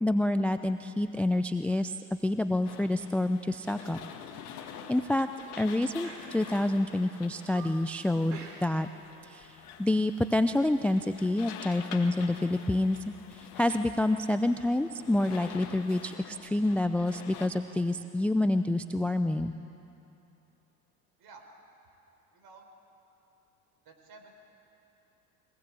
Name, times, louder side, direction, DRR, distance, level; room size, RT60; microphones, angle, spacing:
voice 1, 0.0-1.9 2.2-4.0 4.9-5.3 5.6-8.9 9.3-13.0 13.3-19.5, left 1 dB, 5° left, 10 dB, 0.4 m, -28 dB
sound 1, 1.6-2.0 2.4-2.6 3.1-3.3 3.7-4.0 4.3-4.4 5.0-5.5 6.0-6.8 7.2-7.9 8.3-9.0 9.2-9.5, right 4 dB, 90° right, 3.0 m, -50 dB
sound 2, 2.6-17.5, left 7 dB, 70° left, 1.9 m, -47 dB
voice 2, 22.3-22.7 23.8-24.4, right 4 dB, 50° right, 4 dB, 4.3 m, -53 dB
23.0 x 18.5 x 8.4 m, 2.9 s
hypercardioid pair, 75°, 47 cm